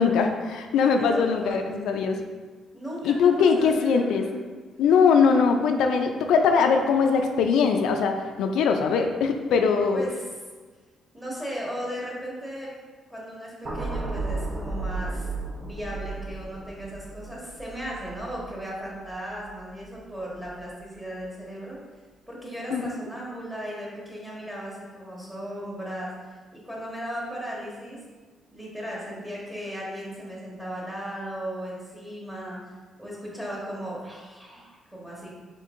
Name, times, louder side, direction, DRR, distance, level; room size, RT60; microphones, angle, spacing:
voice 1, 0.0-2.2 3.0-4.3 4.8-10.0 22.7-22.8, left 5 dB, 80° left, 4 dB, 0.3 m, -21 dB
voice 2, 1.0-1.6 2.7-4.3 9.9-10.2 11.1-12.7 13.1-15.3 15.6-21.8 22.3-26.1 26.5-28.0 28.5-32.7 33.0-35.3, equal, 10° right, -5 dB, 1.4 m, -36 dB
sound 1, 13.6-19.9 20.3-20.6, right 3 dB, 50° right, 0.6 m, -34 dB
4.3 x 3.7 x 2.5 m, 1.4 s
cardioid pair, 90°, 0 cm